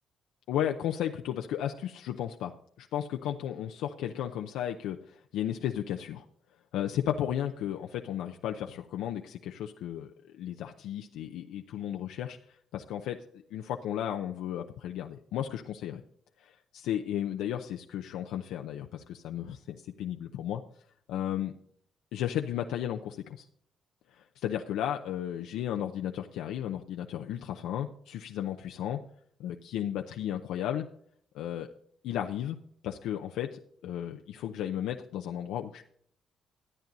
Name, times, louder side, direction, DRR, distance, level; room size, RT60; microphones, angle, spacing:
voice 1, 0.5-2.5 2.8-6.2 6.7-12.4 12.7-13.2 13.5-16.0 16.7-20.6 21.1-21.5 22.1-23.5 24.1-29.0 29.4-30.9 31.3-31.7 32.0-32.6 32.8-35.8, left 10 dB, 90° left, 3 dB, 0.7 m, -34 dB
13.5 x 9.0 x 4.0 m, 0.63 s
cardioid pair, 90°, 0 cm